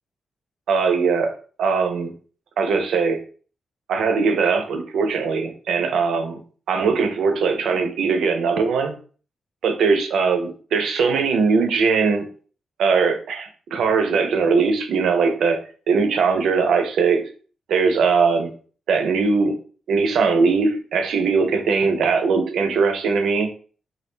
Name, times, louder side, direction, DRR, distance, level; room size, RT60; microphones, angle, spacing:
voice 1, 0.7-1.3 1.6-2.1 2.6-3.2 3.9-6.4 6.7-9.0 9.6-12.3 12.8-15.6 15.9-17.3 17.7-18.5 18.9-19.6 19.9-23.5, right 5 dB, 85° right, 6 dB, 0.4 m, -20 dB
2.2 x 2.1 x 3.1 m, 0.41 s
cardioid pair, 115°, 0 cm